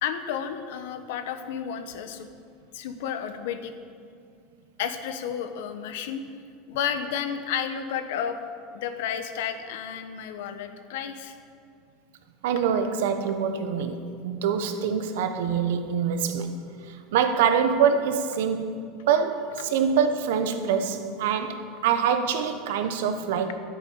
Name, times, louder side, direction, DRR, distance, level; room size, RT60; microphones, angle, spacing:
voice 1, 0.0-2.3 2.7-3.7 4.8-6.2 6.7-8.4 8.7-11.3, left 8 dB, 80° left, 9 dB, 1.1 m, -31 dB
voice 2, 12.4-16.6 16.9-18.8 19.1-21.6 21.8-23.5, right 7 dB, 80° right, 8 dB, 1.2 m, -25 dB
10.5 x 8.9 x 8.8 m, 2.3 s
supercardioid pair, 125°, 0 cm